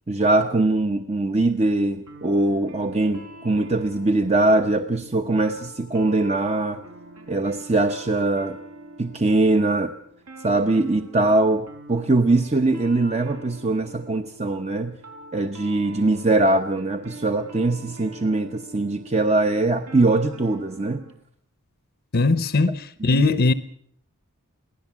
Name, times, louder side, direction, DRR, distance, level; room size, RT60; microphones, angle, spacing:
voice 1, 0.1-6.8 7.3-8.6 9.0-9.9 10.4-15.0 15.3-21.1 23.0-23.2, right 2 dB, 30° right, 0.8 m, -22 dB
sound 1, 2.1-21.2, right 1 dB, 75° right, 4.5 m, -44 dB
voice 2, 22.1-23.5, left 3 dB, 50° left, 0.8 m, -20 dB
23.5 x 16.5 x 7.4 m
head